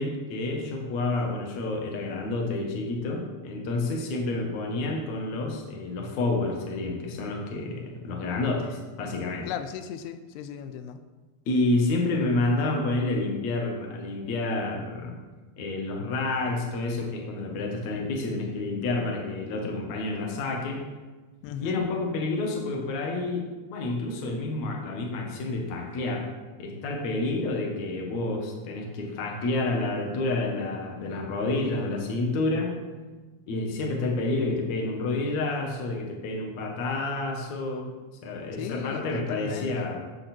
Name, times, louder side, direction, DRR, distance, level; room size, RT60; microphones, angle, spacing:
voice 1, 0.0-9.5 11.5-15.1 15.6-20.8 21.6-26.3 26.6-32.7 33.5-37.9 38.2-40.0, left 2 dB, 55° left, 1 dB, 2.3 m, -29 dB
voice 2, 9.5-11.0 21.4-21.9 38.6-39.9, left 9 dB, 90° left, 9 dB, 2.7 m, -37 dB
12.5 x 7.7 x 4.4 m, 1.3 s
omnidirectional pair, 4.6 m